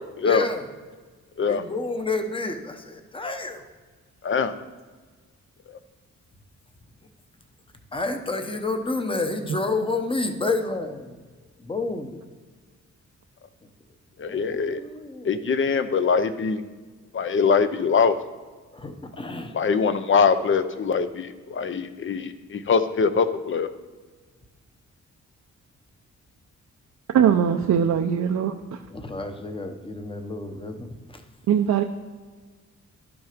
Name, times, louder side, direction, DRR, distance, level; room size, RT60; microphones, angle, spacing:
voice 1, 0.2-0.7 1.5-3.6 7.9-11.2 11.6-12.2 14.2-15.4 18.7-19.5 28.9-31.2, left 3 dB, 20° left, 6 dB, 0.9 m, -29 dB
voice 2, 4.2-4.5 14.2-14.8 15.2-16.6 17.1-18.2 19.5-23.7, left 5 dB, 45° left, 11 dB, 0.7 m, -23 dB
voice 3, 27.1-28.8 31.5-31.8, right 8 dB, 70° right, 3 dB, 0.6 m, -21 dB
11.5 x 7.1 x 5.1 m, 1.4 s
wide cardioid pair, 145°, 29 cm